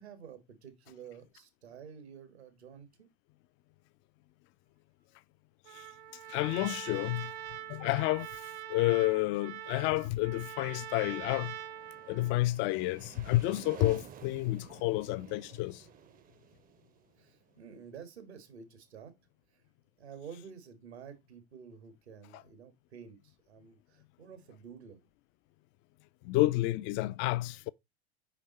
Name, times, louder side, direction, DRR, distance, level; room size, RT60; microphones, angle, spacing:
voice 1, 0.0-3.1 7.7-7.8 17.2-19.1 20.0-25.0, right 7 dB, 75° right, 1.6 m, -50 dB
Trumpet, 5.6-12.4, right 11 dB, 50° right, 0.9 m, -44 dB
voice 2, 6.3-7.3 7.7-11.5 12.1-15.8 26.2-27.7, left 18 dB, 40° left, 0.4 m, -30 dB
sound 1, 11.4-18.0, right 9 dB, 25° right, 0.6 m, -52 dB
5.1 x 5.0 x 4.1 m
figure-of-eight pair, 85°, 32 cm